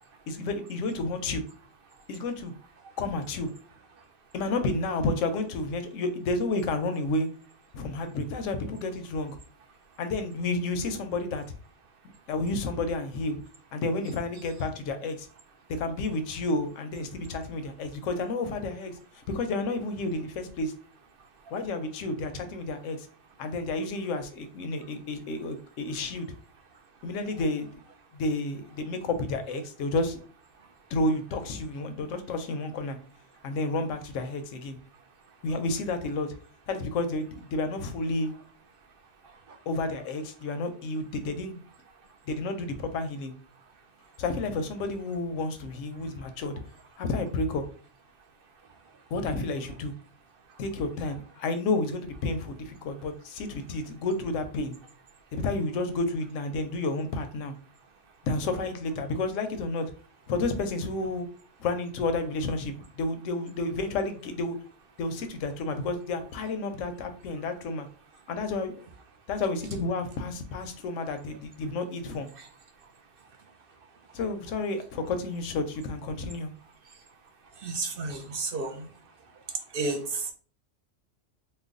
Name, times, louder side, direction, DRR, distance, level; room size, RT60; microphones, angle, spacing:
voice 1, 0.3-1.4 2.1-2.5 3.0-3.5 4.3-7.3 7.7-9.4 10.0-11.4 12.3-13.4 13.7-15.3 15.7-20.7 21.5-23.1 23.4-26.3 27.0-27.7 28.1-30.2 30.9-33.0 33.4-34.8 35.4-36.3 36.7-38.3 39.7-41.7 42.3-43.3 44.2-46.6 47.0-47.6 49.1-49.9 50.6-54.7 55.3-57.5 58.2-59.9 60.3-61.3 61.6-64.6 65.0-67.9 68.3-68.7 69.3-72.3 74.1-76.5, left 2 dB, 85° left, 8 dB, 1.0 m, -31 dB
voice 2, 77.6-78.9 79.7-80.3, right 3 dB, 55° right, 4 dB, 0.7 m, -32 dB
3.2 x 2.2 x 3.6 m, 0.39 s
omnidirectional pair, 1.3 m